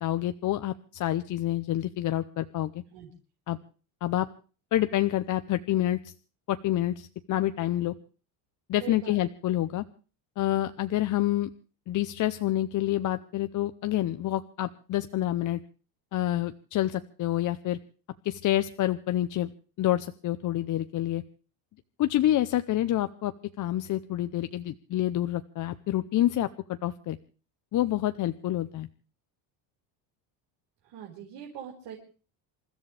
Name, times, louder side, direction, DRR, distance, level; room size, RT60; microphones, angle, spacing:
voice 1, 0.0-2.7 3.5-3.6 4.0-4.3 4.7-6.1 6.5-7.9 8.7-9.8 10.4-11.5 11.9-15.6 16.1-17.8 18.2-19.5 19.8-21.2 22.0-23.3 23.6-27.2 27.7-28.9, left 13 dB, 40° left, 10 dB, 0.7 m, -28 dB
voice 2, 8.8-9.2 30.8-32.0, right 9 dB, 65° right, -2 dB, 5.0 m, -42 dB
28.0 x 13.5 x 3.4 m, 0.37 s
cardioid pair, 140°, 46 cm